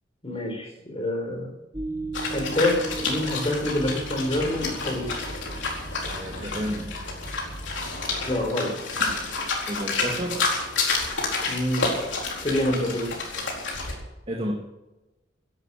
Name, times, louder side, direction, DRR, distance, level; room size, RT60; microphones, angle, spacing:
voice 1, 0.2-1.5 2.3-5.1 8.3-8.7 11.5-11.9 12.4-13.1, left 1 dB, 30° left, 3 dB, 4.2 m, -27 dB
sound 1, 1.7-8.4, right 2 dB, 15° right, 1.4 m, -37 dB
sound 2, 2.1-13.9, left 3 dB, 70° left, 4.4 m, -30 dB
voice 2, 6.1-7.0 9.7-10.6 14.3-14.5, equal, 30° right, 1 dB, 2.0 m, -31 dB
16.5 x 11.5 x 6.6 m, 1.0 s
head